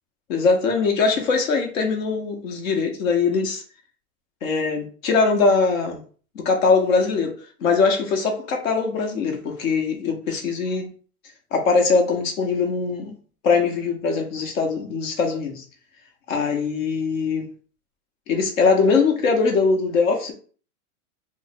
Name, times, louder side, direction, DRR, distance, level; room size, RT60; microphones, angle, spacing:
voice 1, 0.3-3.6 4.4-6.0 6.3-7.3 7.6-10.9 11.5-13.1 13.4-15.6 16.3-17.5 18.3-20.3, left 4 dB, 60° left, 1.0 m, -21 dB
3.1 x 2.0 x 4.0 m
supercardioid pair, 175°, 45 cm